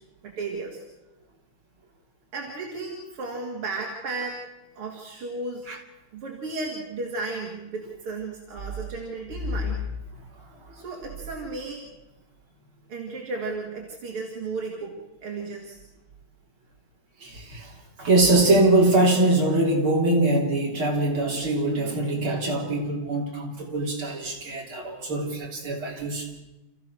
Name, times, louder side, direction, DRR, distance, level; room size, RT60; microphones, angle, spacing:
voice 1, 0.2-0.8 2.3-4.4 4.8-5.7 6.1-9.8 10.7-11.8 12.9-15.8, right 3 dB, 85° right, 3.3 m, -34 dB
voice 2, 17.2-26.3, right 2 dB, 70° right, 4.3 m, -23 dB
29.0 x 15.0 x 6.4 m
omnidirectional pair, 2.4 m